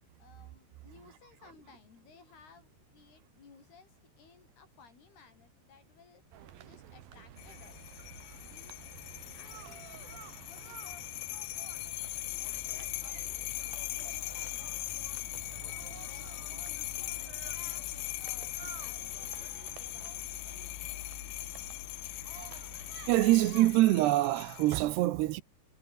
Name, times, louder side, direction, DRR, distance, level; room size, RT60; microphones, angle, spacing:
voice 1, 0.2-6.2 6.6-7.9 8.5-8.8 9.4-11.5 12.3-14.8 15.8-20.2, left 5 dB, 65° left, 7.0 m, -59 dB
sound 1, 6.3-23.7, right 11 dB, 65° right, 3.4 m, -51 dB
sound 2, 7.4-24.8, left 22 dB, 85° left, 2.8 m, -40 dB
voice 2, 23.1-25.4, right 16 dB, 80° right, 3.0 m, -25 dB
omnidirectional pair, 4.9 m